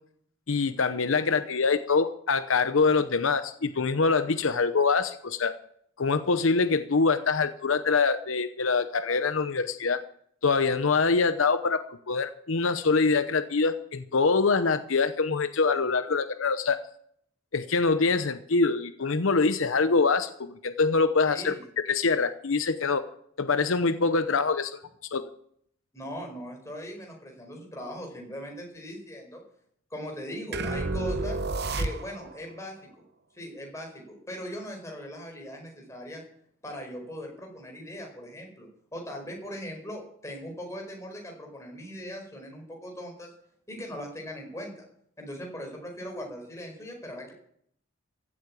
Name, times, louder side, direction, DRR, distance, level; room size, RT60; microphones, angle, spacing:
voice 1, 0.5-5.5 6.0-10.0 10.4-16.8 17.5-21.5 21.9-23.0 23.4-24.8 25.1-25.2, left 4 dB, 75° left, 10 dB, 0.8 m, -24 dB
voice 2, 21.3-21.6 25.9-29.4 29.9-31.4 31.7-33.0 33.3-36.2 36.6-43.3 43.7-44.7 45.2-47.3, equal, 15° left, 1 dB, 4.6 m, -39 dB
sound 1, 30.5-32.4, right 2 dB, 50° right, 0.8 m, -30 dB
15.5 x 8.5 x 8.4 m, 0.67 s
head